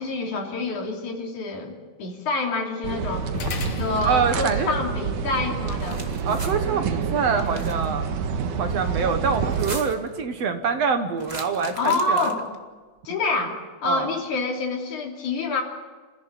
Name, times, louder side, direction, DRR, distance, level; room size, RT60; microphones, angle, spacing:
voice 1, 0.0-3.2 3.6-6.0 11.8-12.4 13.0-15.6, left 3 dB, 80° left, 1 dB, 4.5 m, -27 dB
sound 1, 2.8-9.7, right 6 dB, 90° right, 3.0 m, -28 dB
sound 2, 3.3-12.0, left 4 dB, 65° left, 3.0 m, -41 dB
voice 2, 4.0-4.7 6.2-8.1 8.6-12.4 13.8-14.2, right 5 dB, 60° right, 7 dB, 2.4 m, -25 dB
sound 3, 5.5-6.5 7.3-7.9 9.4-10.1 11.2-12.5, right 2 dB, 15° right, 1.7 m, -38 dB
28.0 x 15.5 x 8.9 m, 1.4 s
omnidirectional pair, 3.4 m